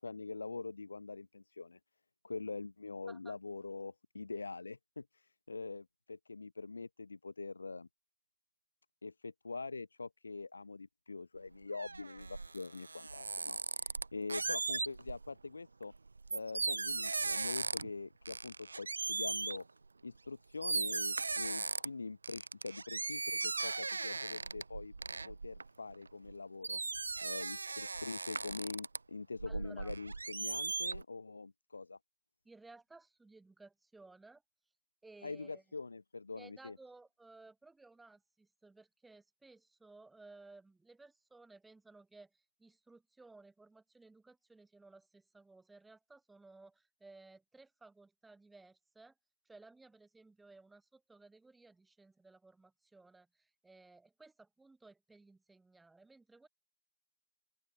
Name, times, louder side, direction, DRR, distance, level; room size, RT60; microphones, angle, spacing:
voice 1, 0.0-1.8 2.2-7.9 9.0-15.9 16.3-19.6 20.0-24.9 25.2-26.8 27.2-32.0 35.2-36.8, left 3 dB, 80° left, 1.3 m, -44 dB
sound 1, 11.4-15.3 15.8-18.0 18.3-19.6 20.3-20.4 20.6-21.9 22.2-26.3 26.6-29.0 29.4-31.0, right 3 dB, 85° right, 2.1 m, -38 dB
voice 2, 29.5-29.9 32.4-34.4 35.0-35.6 36.3-49.1 49.4-56.5, right 3 dB, ahead, 5.2 m, -59 dB
open air
hypercardioid pair, 175°, 0 cm